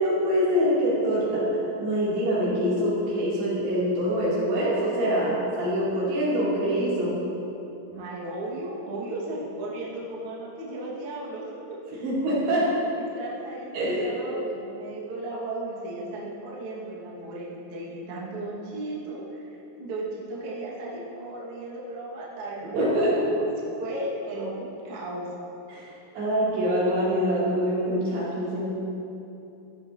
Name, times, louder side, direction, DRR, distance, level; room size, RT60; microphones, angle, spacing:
voice 1, 0.0-7.2 12.0-12.8 13.7-14.1 22.7-23.2 25.7-25.9 26.1-28.7, equal, 90° right, -10 dB, 4.7 m, -24 dB
voice 2, 7.9-12.0 12.5-23.1 23.3-23.5 23.8-25.3, right 2 dB, 65° right, -6 dB, 1.4 m, -36 dB
14.5 x 9.6 x 2.7 m, 2.8 s
omnidirectional pair, 4.9 m